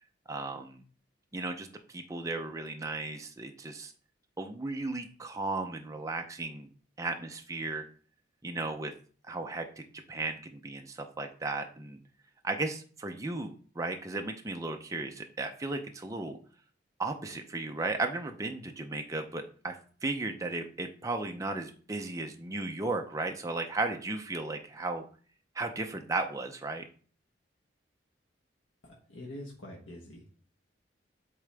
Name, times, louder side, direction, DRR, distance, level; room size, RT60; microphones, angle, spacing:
voice 1, 0.3-0.8 1.3-3.9 4.4-6.7 7.0-7.9 8.4-8.9 9.3-12.0 12.4-16.4 17.0-19.8 20.0-25.0 25.5-26.8, right 2 dB, 15° right, 4 dB, 0.5 m, -35 dB
voice 2, 28.8-30.2, left 1 dB, 80° left, -1 dB, 1.2 m, -45 dB
8.4 x 3.7 x 3.4 m, 0.43 s
head